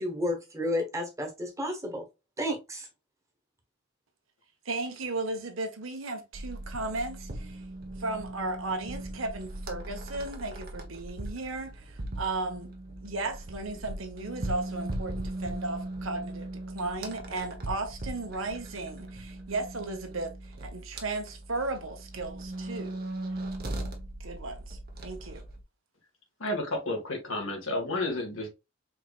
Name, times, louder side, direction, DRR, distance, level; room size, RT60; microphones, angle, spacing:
voice 1, 0.0-2.0 2.4-2.9, left 1 dB, 15° right, 1.3 m, -31 dB
voice 2, 4.6-7.6 8.0-12.7 13.0-23.0 24.2-25.4, right 2 dB, 75° right, 1.1 m, -35 dB
sound 1, 6.3-25.6, right 1 dB, 50° right, 1.2 m, -39 dB
voice 3, 26.4-28.5, left 2 dB, 70° left, 1.9 m, -31 dB
4.6 x 3.5 x 2.4 m
head